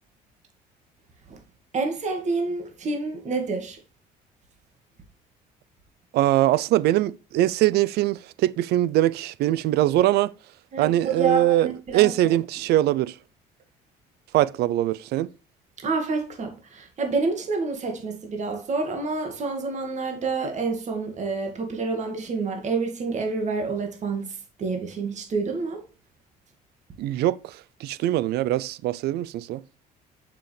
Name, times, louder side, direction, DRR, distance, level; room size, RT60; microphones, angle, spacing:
voice 1, 1.7-3.8 10.7-10.9 11.2-12.1 15.8-24.3 24.6-25.8, right 4 dB, 45° right, 2.0 m, -28 dB
voice 2, 6.1-10.3 10.8-13.2 14.3-15.3 27.0-29.6, right 14 dB, 75° right, 0.5 m, -22 dB
6.8 x 5.9 x 3.3 m
cardioid pair, 110°, 17 cm